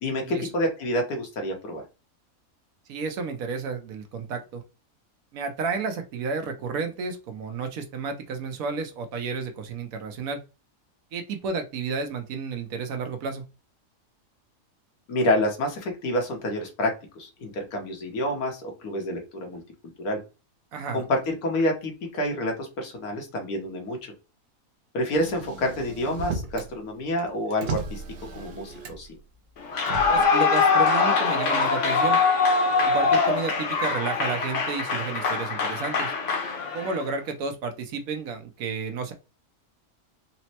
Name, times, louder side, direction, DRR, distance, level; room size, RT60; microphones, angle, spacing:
voice 1, 0.0-1.8 15.1-20.2 20.9-24.1 24.9-28.0 28.3-29.2, left 1 dB, 90° left, 3 dB, 1.5 m, -28 dB
voice 2, 2.9-4.6 5.3-10.4 11.1-13.4 20.7-21.0 30.1-32.2 32.8-36.1 36.7-39.1, right 4 dB, 75° right, 6 dB, 1.1 m, -31 dB
Motor vehicle (road), 25.1-26.7 27.1-29.2 29.8-30.2, right 4 dB, 55° right, 0.7 m, -35 dB
Clapping / Cheering / Applause, 29.6-37.1, left 4 dB, 60° left, 1.0 m, -23 dB
4.1 x 2.1 x 2.8 m, 0.30 s
omnidirectional pair, 1.5 m